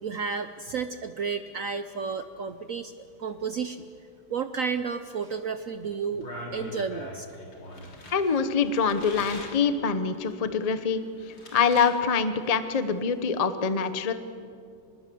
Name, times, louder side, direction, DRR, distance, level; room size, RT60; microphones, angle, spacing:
voice 1, 0.0-3.8 4.3-6.3 6.5-7.3, right 5 dB, 75° right, 10 dB, 0.7 m, -32 dB
sound 1, 5.9-9.6 10.1-12.0 12.2-12.8, left 1 dB, 60° left, 4.0 m, -42 dB
voice 2, 8.1-14.1, left 5 dB, 45° left, 11 dB, 0.5 m, -25 dB
25.5 x 20.5 x 7.7 m, 2.4 s
omnidirectional pair, 2.3 m